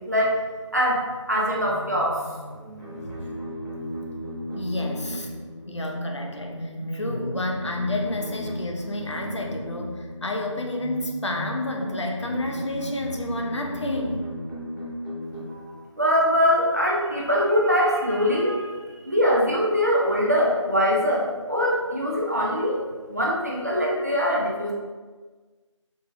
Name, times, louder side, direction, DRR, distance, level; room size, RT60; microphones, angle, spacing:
voice 1, 0.1-0.4 0.7-2.2 15.5-15.6 16.0-22.8 23.1-24.7, equal, 35° right, -4 dB, 0.5 m, -23 dB
sound 1, 1.6-15.6, equal, 35° left, 1.2 m, -35 dB
voice 2, 4.5-5.3 5.7-14.3, left 1 dB, 65° left, 1 dB, 0.6 m, -30 dB
3.7 x 2.8 x 2.5 m, 1.4 s
figure-of-eight pair, 170°, 16 cm